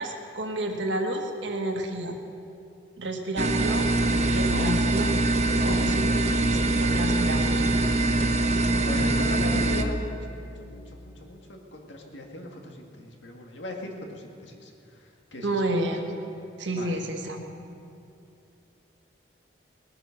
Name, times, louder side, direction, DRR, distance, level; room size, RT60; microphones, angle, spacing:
voice 1, 0.0-2.2 3.0-3.9 4.2-5.1 5.6-7.7 15.4-16.1 16.6-17.4, right 1 dB, 75° right, 3 dB, 1.6 m, -30 dB
sound 1, 3.4-9.8, right 2 dB, 35° right, 0.8 m, -23 dB
voice 2, 4.4-4.7 5.5-5.8 6.9-7.2 7.8-8.0 8.8-14.7 15.3-15.6 16.7-17.0, left 1 dB, 75° left, 2 dB, 1.9 m, -38 dB
19.5 x 9.0 x 6.4 m, 2.7 s
head